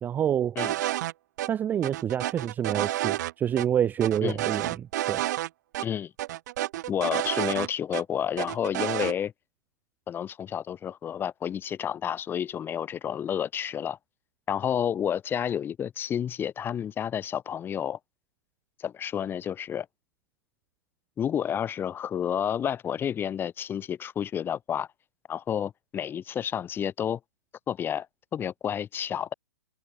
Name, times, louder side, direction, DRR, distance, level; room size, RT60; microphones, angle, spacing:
voice 1, 0.0-0.6 1.5-5.2, right 9 dB, 15° right, 0.4 m, -27 dB
sound 1, 0.6-1.1 1.4-1.5 1.8-3.3 3.6-3.7 4.0-5.5 5.7-5.9 6.2-8.0 8.4-9.1, right 15 dB, 55° right, 0.9 m, -30 dB
voice 2, 5.8-6.1 6.9-9.3 10.1-14.0 14.5-18.0 18.8-19.9 21.2-24.9 25.3-27.2 27.7-28.1 28.3-29.3, left 9 dB, 20° left, 1.3 m, -30 dB
hypercardioid pair, 125°, 11 cm